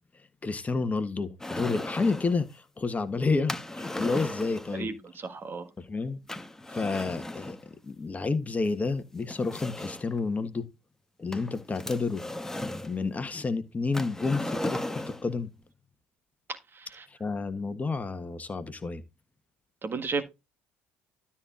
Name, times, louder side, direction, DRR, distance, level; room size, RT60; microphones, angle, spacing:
voice 1, 0.4-4.9 5.8-6.2 6.7-10.7 11.2-12.2 12.8-15.5 17.1-19.0, left 4 dB, 25° left, 1.5 m, -30 dB
sound 1, 1.4-2.4 3.5-4.8 6.3-7.6 8.6-8.7 9.3-10.2 11.3-12.9 13.9-15.3, left 1 dB, 10° left, 1.3 m, -36 dB
voice 2, 4.8-5.7 16.8-17.0 19.8-20.2, right 4 dB, 35° right, 1.7 m, -33 dB
12.5 x 4.3 x 3.8 m
hypercardioid pair, 70°, 6 cm